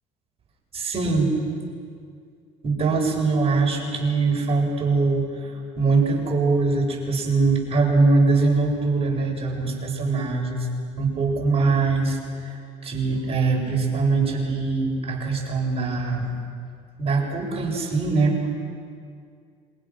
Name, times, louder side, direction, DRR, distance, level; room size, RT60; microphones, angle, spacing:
voice 1, 0.7-1.3 2.6-10.7 11.0-12.6 12.8-16.3 17.0-18.5, right 3 dB, 35° right, -1 dB, 7.8 m, -22 dB
27.0 x 24.5 x 6.5 m, 2.2 s
supercardioid pair, 85°, 17 cm